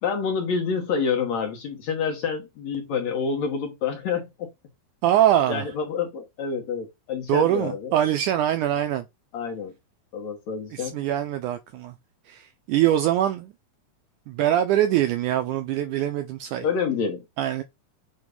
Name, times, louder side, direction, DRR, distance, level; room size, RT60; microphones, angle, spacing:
voice 1, 0.0-4.5 5.5-7.9 9.3-9.7 10.1-11.0 16.6-17.2, left 6 dB, 60° left, 2.1 m, -28 dB
voice 2, 5.0-5.7 7.3-9.1 10.7-12.0 12.3-13.5 14.3-16.7 17.4-17.6, right 11 dB, 80° right, 1.8 m, -23 dB
8.0 x 3.1 x 5.2 m
omnidirectional pair, 4.2 m